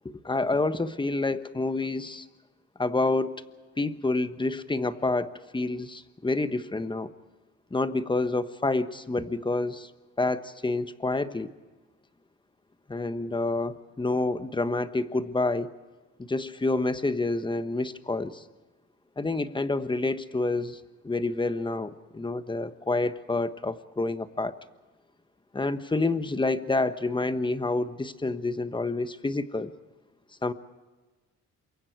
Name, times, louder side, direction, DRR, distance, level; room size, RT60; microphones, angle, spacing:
voice 1, 0.2-2.3 2.8-3.3 3.8-7.1 7.7-9.9 10.2-11.5 12.9-15.7 16.2-18.4 19.2-24.6 25.5-29.7 30.4-30.5, left 2 dB, 15° left, 11 dB, 1.3 m, -28 dB
28.0 x 23.0 x 4.7 m, 1.2 s
cardioid pair, 90°, 30 cm